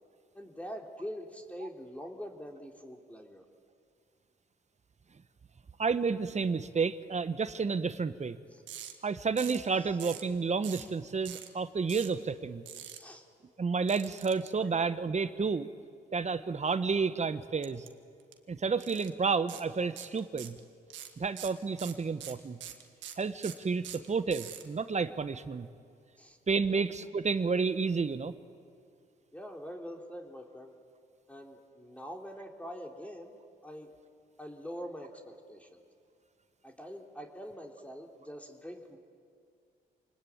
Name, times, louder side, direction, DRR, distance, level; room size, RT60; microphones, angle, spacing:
voice 1, 0.3-3.4 8.5-8.6 9.8-10.0 13.0-13.2 14.6-14.7 26.2-26.4 26.7-26.8 29.3-30.7 31.3-33.3 33.6-33.9 34.4-35.8 36.6-39.0, equal, 5° left, 2 dB, 3.4 m, -44 dB
voice 2, 5.8-8.4 9.0-12.6 13.6-15.7 16.1-17.8 18.5-20.6 21.2-22.6 23.2-25.7 26.5-28.3, right 5 dB, 40° right, 12 dB, 1.3 m, -30 dB
sound 1, 8.7-8.9 9.4-9.7 10.0-10.3 10.6-10.9 11.2-11.5 11.9-12.1 12.7-13.0 13.9-14.5 17.6-17.9 18.2-18.3 18.8-19.1 19.5-19.6 20.0-20.6 20.9-24.6, right 11 dB, 85° right, 1.7 m, -44 dB
27.0 x 20.0 x 8.8 m, 2.3 s
supercardioid pair, 55°, 19 cm